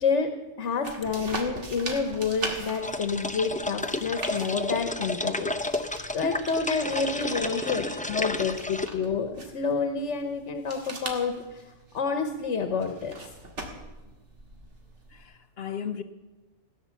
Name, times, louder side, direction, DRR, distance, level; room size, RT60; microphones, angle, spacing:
voice 1, 0.0-0.3 0.6-5.8 6.1-11.6 11.9-13.1, left 5 dB, 85° left, 1.3 m, -29 dB
sound 1, 0.8-15.2, right 2 dB, 80° right, 2.2 m, -42 dB
sound 2, 2.8-8.9, left 2 dB, 10° left, 0.4 m, -31 dB
voice 2, 6.4-8.9 15.1-16.0, left 7 dB, 65° left, 0.9 m, -40 dB
17.0 x 9.6 x 7.0 m
omnidirectional pair, 1.2 m